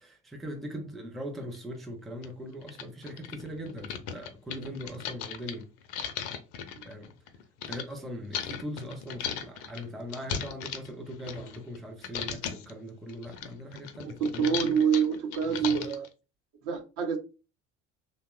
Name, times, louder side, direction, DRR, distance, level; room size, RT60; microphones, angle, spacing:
voice 1, 0.0-5.7 6.8-7.1 7.6-14.7 15.4-15.8, equal, ahead, 0.4 m, -40 dB
sound 1, 1.5-1.6 2.2-2.3 2.6-7.8 8.3-11.8 12.0-12.7 13.1-16.1, left 8 dB, 60° left, 0.5 m, -37 dB
voice 2, 14.0-16.1 16.6-17.2, right 7 dB, 60° right, 0.7 m, -27 dB
2.8 x 2.0 x 2.3 m
hypercardioid pair, 65°, 36 cm